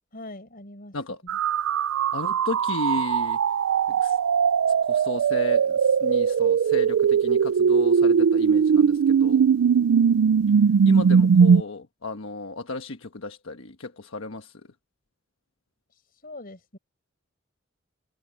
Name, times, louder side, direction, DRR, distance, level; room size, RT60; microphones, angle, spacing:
voice 1, 0.1-1.0 1.2-1.4 16.2-16.8, left 2 dB, 45° left, 5.4 m, -42 dB
sound 1, 1.3-11.6, right 6 dB, 85° right, 0.4 m, -20 dB
voice 2, 2.1-3.4 3.9-4.2 4.9-9.5 10.8-14.5, left 2 dB, 75° left, 1.3 m, -34 dB
open air
head